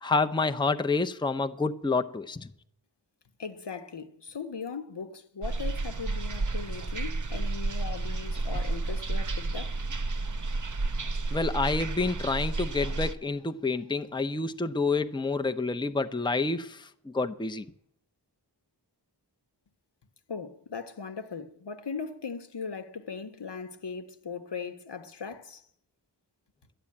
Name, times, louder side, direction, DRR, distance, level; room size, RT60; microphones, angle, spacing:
voice 1, 0.0-2.5 11.3-17.7, left 3 dB, 10° left, 0.6 m, -28 dB
voice 2, 3.4-9.8 20.3-25.6, left 5 dB, 75° left, 1.2 m, -39 dB
sound 1, 5.4-13.1, right 3 dB, 45° right, 0.8 m, -31 dB
11.5 x 10.5 x 8.6 m
wide cardioid pair, 50°, 42 cm